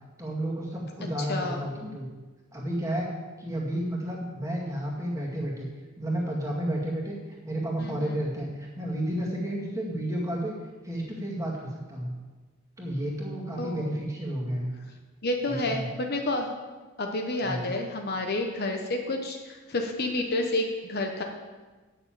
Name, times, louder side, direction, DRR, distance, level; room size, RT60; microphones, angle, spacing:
voice 1, 0.2-2.1 2.5-3.1 3.4-5.7 6.0-7.2 7.4-10.5 10.8-12.1 12.8-14.7 15.5-15.9 17.4-17.7, right 1 dB, 15° right, -3 dB, 2.1 m, -31 dB
voice 2, 1.3-1.7 7.8-8.2 13.6-13.9 15.2-16.5 17.0-21.2, left 2 dB, 45° left, 3 dB, 1.0 m, -30 dB
9.6 x 6.6 x 7.6 m, 1.3 s
head